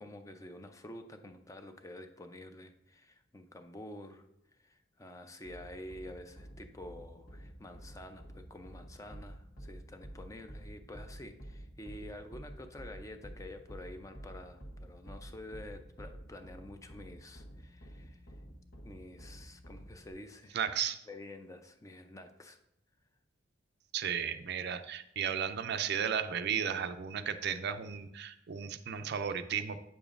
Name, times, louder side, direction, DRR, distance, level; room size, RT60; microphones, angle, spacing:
voice 1, 0.0-4.2 4.6-18.4 18.8-20.6 21.1-22.6, left 1 dB, 15° left, 7 dB, 0.5 m, -49 dB
sound 1, 5.4-20.1, right 1 dB, 55° left, 1.2 m, -50 dB
voice 2, 20.5-21.0 23.9-29.8, right 7 dB, 60° right, 10 dB, 0.4 m, -34 dB
8.9 x 6.9 x 2.5 m, 0.79 s
head